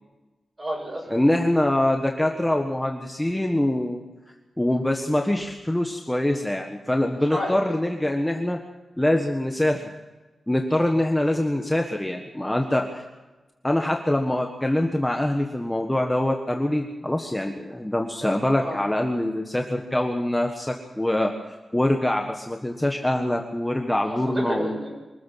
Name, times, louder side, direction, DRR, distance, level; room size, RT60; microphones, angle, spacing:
voice 1, 0.6-1.1 7.3-7.6 18.2-18.8 24.0-24.9, equal, 25° right, 1 dB, 7.1 m, -30 dB
voice 2, 1.1-4.0 4.6-8.6 9.0-9.9 10.5-13.0 13.6-21.3 21.7-24.7, left 1 dB, 10° left, 3 dB, 1.5 m, -24 dB
24.5 x 14.0 x 7.5 m, 1.2 s
wide cardioid pair, 120°, 0 cm